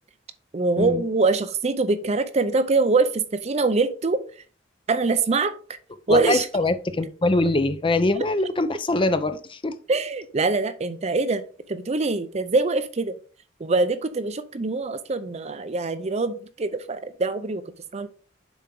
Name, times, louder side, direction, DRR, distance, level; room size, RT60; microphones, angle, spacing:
voice 1, 0.5-4.4 4.9-5.5 6.1-6.5 9.9-13.2 13.6-18.1, right 3 dB, 35° right, 11 dB, 0.5 m, -24 dB
voice 2, 6.1-9.8, left 2 dB, 25° left, 11 dB, 0.6 m, -23 dB
7.1 x 4.4 x 3.8 m, 0.39 s
head